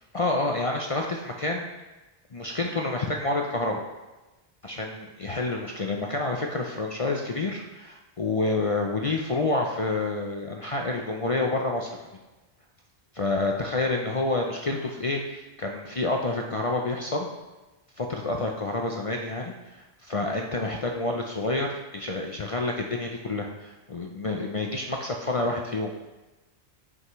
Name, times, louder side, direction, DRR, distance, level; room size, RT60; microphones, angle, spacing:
voice 1, 0.1-1.7 2.3-3.8 4.6-11.9 13.1-17.3 18.0-25.9, left 2 dB, 40° left, 1 dB, 0.6 m, -28 dB
9.5 x 5.6 x 3.1 m, 1.1 s
omnidirectional pair, 1.1 m